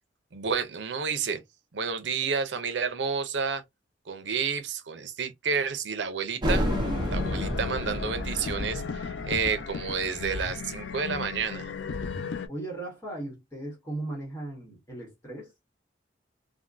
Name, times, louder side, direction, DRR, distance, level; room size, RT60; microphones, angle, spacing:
voice 1, 0.3-1.4 1.7-3.6 4.1-6.7 7.1-11.7, right 5 dB, 85° right, 0.6 m, -30 dB
sound 1, 6.4-11.7, equal, 25° right, 0.8 m, -31 dB
sound 2, 6.6-12.5, left 5 dB, 85° left, 0.4 m, -35 dB
voice 2, 12.5-15.5, right 2 dB, 15° left, 1.1 m, -37 dB
3.5 x 2.1 x 2.5 m
head